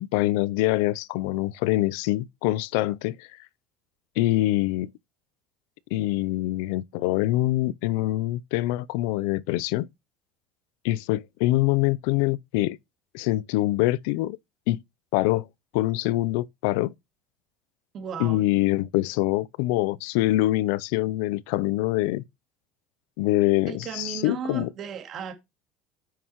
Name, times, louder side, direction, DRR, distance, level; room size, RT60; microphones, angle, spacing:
voice 1, 0.0-3.3 4.2-4.9 5.9-9.9 10.8-12.8 13.1-14.4 14.7-14.8 15.1-15.5 15.7-16.9 18.2-22.2 23.2-24.7, left 17 dB, 75° left, 0.5 m, -24 dB
voice 2, 17.9-18.4 23.7-25.3, right 7 dB, 35° right, 2.3 m, -35 dB
9.2 x 6.4 x 3.0 m
cardioid pair, 155°, 0 cm